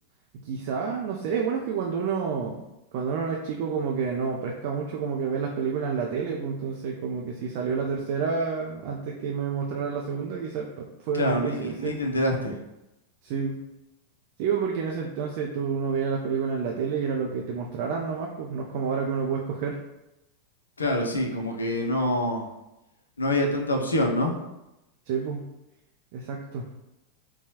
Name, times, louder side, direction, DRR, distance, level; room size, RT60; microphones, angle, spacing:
voice 1, 0.3-2.6 2.9-11.9 13.2-13.6 14.4-19.8 25.1-25.4 26.1-26.6, right 6 dB, 45° right, 0 dB, 0.4 m, -29 dB
voice 2, 11.1-12.6 20.8-22.5 23.2-24.4, left 1 dB, 75° left, 1 dB, 0.5 m, -26 dB
3.9 x 2.3 x 2.9 m, 0.92 s
figure-of-eight pair, 90°, 0 cm